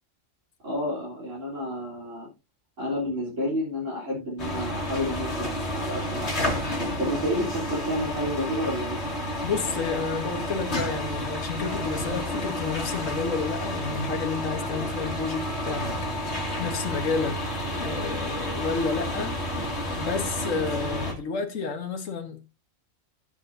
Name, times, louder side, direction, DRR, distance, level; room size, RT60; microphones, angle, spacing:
voice 1, 0.6-2.3 2.8-6.5 7.0-9.0, left 1 dB, 70° right, 4.1 m, -30 dB
sound 1, 4.4-21.1, equal, 55° left, 2.8 m, -30 dB
voice 2, 9.4-17.4 17.8-19.4 19.9-22.4, left 4 dB, 80° left, 1.8 m, -30 dB
15.5 x 7.7 x 2.7 m
omnidirectional pair, 1.3 m